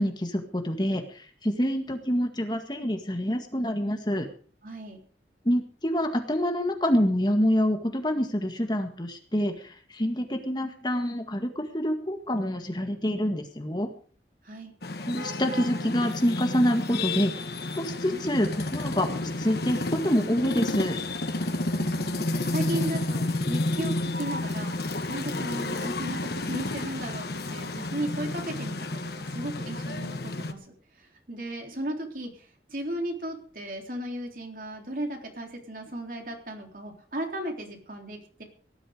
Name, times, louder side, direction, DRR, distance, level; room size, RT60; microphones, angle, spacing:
voice 1, 0.0-4.3 5.5-13.9 15.1-17.4 17.8-21.0, equal, 25° left, 5 dB, 1.9 m, -27 dB
voice 2, 4.6-5.0 14.4-14.7 21.7-24.7 25.1-38.4, right 1 dB, 50° right, 3 dB, 3.6 m, -36 dB
sound 1, 14.8-30.5, left 2 dB, 65° left, 1.5 m, -31 dB
18.0 x 11.5 x 5.1 m, 0.43 s
head